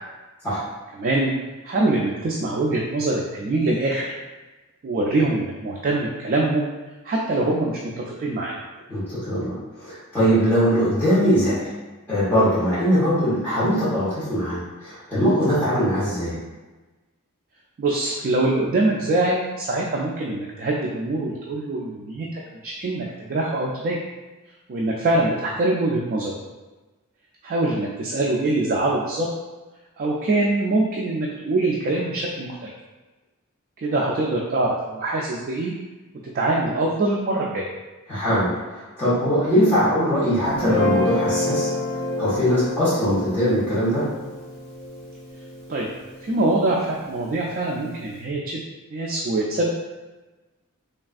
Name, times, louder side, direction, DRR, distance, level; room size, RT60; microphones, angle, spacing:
voice 1, 1.0-1.3 1.6-4.1 4.8-6.7 7.0-8.5 17.8-24.0 24.7-26.3 27.4-29.3 30.0-32.7 33.8-35.7 36.2-37.7 45.7-45.9 46.2-48.6 48.9-49.7, right 2 dB, 40° right, -3 dB, 0.3 m, -24 dB
voice 2, 8.9-11.7 12.1-16.4 38.1-41.7 42.2-44.0, equal, 10° left, -14 dB, 1.0 m, -21 dB
Guitar, 40.5-46.8, left 2 dB, 70° left, 1.0 m, -28 dB
3.3 x 2.3 x 2.4 m, 1.2 s
head